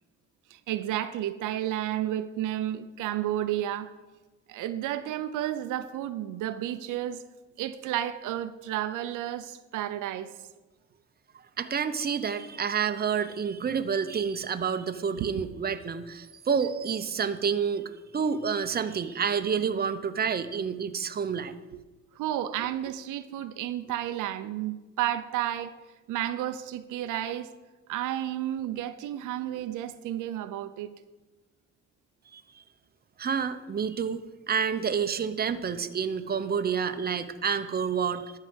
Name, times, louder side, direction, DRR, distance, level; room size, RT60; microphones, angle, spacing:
voice 1, 0.5-3.9 4.5-7.2 7.6-10.3 15.2-15.3 21.7-21.8 22.1-25.7 26.1-27.5 27.9-30.9, right 12 dB, 90° right, 11 dB, 0.7 m, -32 dB
voice 2, 11.6-21.5 32.3-32.4 33.2-38.4, right 6 dB, 30° right, 9 dB, 0.8 m, -29 dB
12.5 x 4.8 x 8.0 m, 1.2 s
cardioid pair, 90°, 30 cm